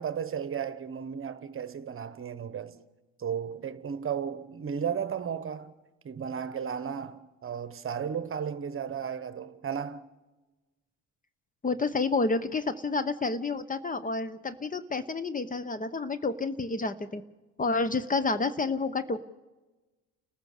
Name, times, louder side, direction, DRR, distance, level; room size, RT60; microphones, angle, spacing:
voice 1, 0.0-2.8 3.2-5.7 6.0-10.1, right 7 dB, 40° right, 1.2 m, -34 dB
voice 2, 11.6-17.2 17.6-19.2, left 3 dB, 25° left, 1.0 m, -29 dB
30.0 x 14.5 x 6.7 m
supercardioid pair, 75°, 34 cm